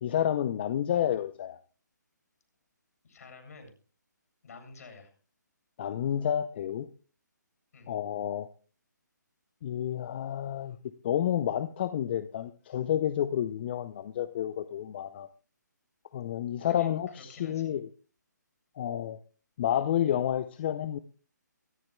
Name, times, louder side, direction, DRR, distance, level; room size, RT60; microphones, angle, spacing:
voice 1, 0.0-1.6 5.8-6.9 7.9-8.5 9.6-10.8 11.0-15.3 16.1-17.9 18.8-19.2 19.6-21.0, left 10 dB, 35° left, 12 dB, 0.6 m, -30 dB
voice 2, 3.0-3.7 4.4-5.1 7.7-7.9 16.6-17.7, left 3 dB, 55° left, 4 dB, 7.8 m, -49 dB
23.0 x 11.5 x 2.3 m, 0.38 s
figure-of-eight pair, 145°, 10 cm